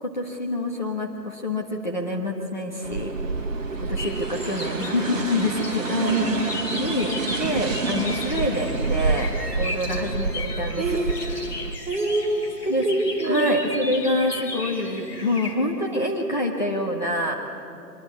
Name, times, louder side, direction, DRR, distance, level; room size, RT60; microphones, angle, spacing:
voice 1, 0.0-3.1 3.8-6.1 6.7-11.0 12.7-12.8 13.2-17.3, left 1 dB, 25° left, 0 dB, 1.5 m, -27 dB
sound 1, 2.8-11.7, right 3 dB, 50° right, 1.5 m, -28 dB
sound 2, 4.0-15.5, left 2 dB, 65° left, 4.0 m, -36 dB
voice 2, 10.8-11.2 11.9-13.6, right 2 dB, 10° right, -7 dB, 2.1 m, -24 dB
23.5 x 23.0 x 8.5 m, 2.8 s
figure-of-eight pair, 170°, 50 cm